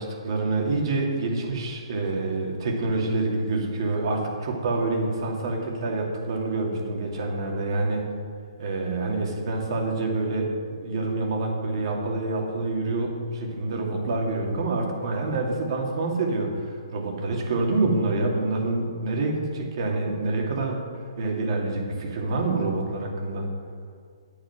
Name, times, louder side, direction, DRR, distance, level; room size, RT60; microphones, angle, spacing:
voice 1, 0.0-8.0 8.6-20.8 21.2-23.5, right 2 dB, 55° right, 1 dB, 2.4 m, -27 dB
8.9 x 8.8 x 6.0 m, 2.1 s
hypercardioid pair, 150°, 3 cm